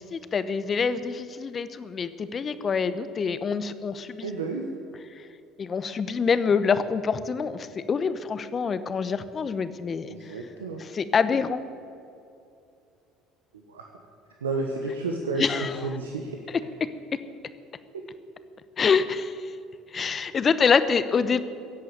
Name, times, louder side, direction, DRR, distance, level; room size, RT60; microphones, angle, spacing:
voice 1, 0.0-4.3 5.6-10.1 10.8-11.6 15.4-15.9 16.5-16.6 18.8-19.5 19.9-21.4, left 5 dB, 35° left, 13 dB, 0.9 m, -26 dB
voice 2, 4.2-4.7 10.1-10.8 13.7-13.8 14.4-15.5 15.8-16.4, right 3 dB, 90° right, 1 dB, 1.1 m, -31 dB
15.0 x 8.3 x 9.1 m, 2.6 s
hypercardioid pair, 65°, 0 cm